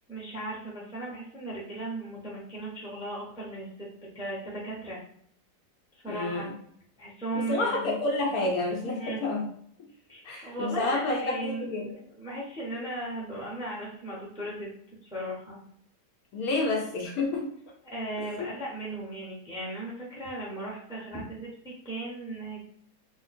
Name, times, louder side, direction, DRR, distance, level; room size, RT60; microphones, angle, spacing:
voice 1, 0.1-3.9 4.1-5.0 5.9-6.5 7.0-7.9 8.9-9.2 10.1-14.7 15.0-15.6 16.6-16.8 17.8-22.6, right 1 dB, 5° right, -5 dB, 0.6 m, -37 dB
voice 2, 6.1-6.5 7.5-9.5 10.2-11.9 16.3-17.5, left 2 dB, 70° left, -1 dB, 1.0 m, -29 dB
2.7 x 2.2 x 4.1 m, 0.66 s
omnidirectional pair, 1.8 m